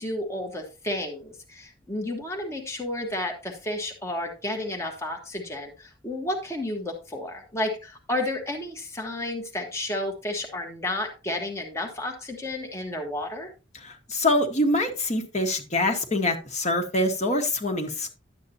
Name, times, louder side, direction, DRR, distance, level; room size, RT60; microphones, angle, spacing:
voice 1, 0.0-13.5, left 1 dB, 15° left, 1 dB, 1.1 m, -32 dB
voice 2, 13.7-18.1, left 1 dB, 40° left, 4 dB, 1.4 m, -25 dB
11.0 x 8.3 x 2.8 m, 0.30 s
head